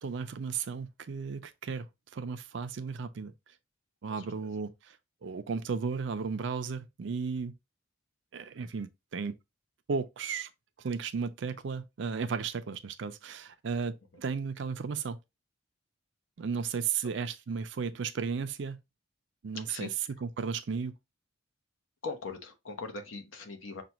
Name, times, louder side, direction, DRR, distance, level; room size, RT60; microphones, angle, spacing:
voice 1, 0.0-3.3 4.0-5.0 5.2-7.6 8.3-9.4 9.9-10.5 10.8-15.2 16.4-18.8 19.4-20.9, right 5 dB, 60° right, 0.4 m, -34 dB
voice 2, 22.0-23.8, left 3 dB, 75° left, 0.9 m, -40 dB
5.9 x 2.3 x 2.9 m
head